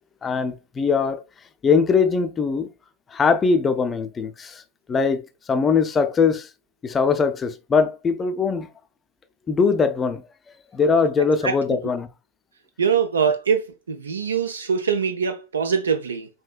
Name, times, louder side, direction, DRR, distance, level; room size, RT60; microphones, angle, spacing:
voice 1, 0.2-1.2 1.6-2.7 3.1-4.6 4.9-6.5 6.8-8.7 9.5-10.2 10.7-12.1, left 5 dB, 20° left, 0.5 m, -21 dB
voice 2, 11.4-11.8 12.8-16.3, right 6 dB, 70° right, 0.4 m, -23 dB
5.4 x 2.7 x 2.3 m
figure-of-eight pair, 90°, 0 cm